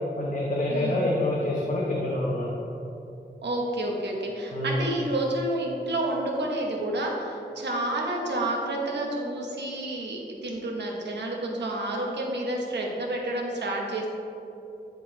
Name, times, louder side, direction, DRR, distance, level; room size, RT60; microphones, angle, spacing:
voice 1, 0.2-2.5 4.5-4.8, left 1 dB, 45° left, -5 dB, 0.9 m, -26 dB
voice 2, 0.7-1.0 3.4-14.1, right 1 dB, 85° right, -1 dB, 1.1 m, -29 dB
10.0 x 3.8 x 3.2 m, 2.8 s
wide cardioid pair, 115°, 18 cm